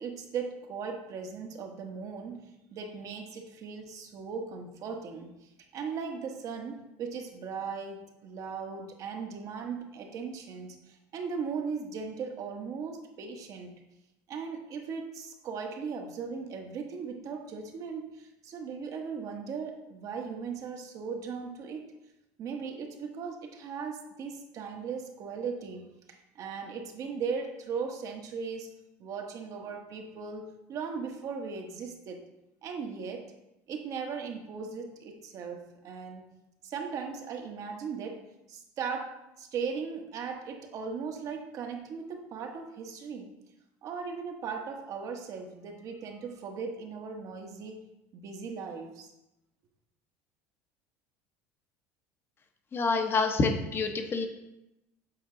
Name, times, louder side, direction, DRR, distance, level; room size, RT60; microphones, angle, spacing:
voice 1, 0.0-5.3 5.7-10.8 11.1-13.7 14.3-21.8 22.4-28.7 29.0-32.2 32.6-33.3 33.7-36.3 36.6-38.2 38.5-43.3 43.8-47.8 48.1-49.1, right 5 dB, 50° right, 3 dB, 1.2 m, -38 dB
voice 2, 52.7-54.3, left 4 dB, 30° left, 5 dB, 1.0 m, -27 dB
7.7 x 4.4 x 3.8 m, 0.92 s
supercardioid pair, 110°, 7 cm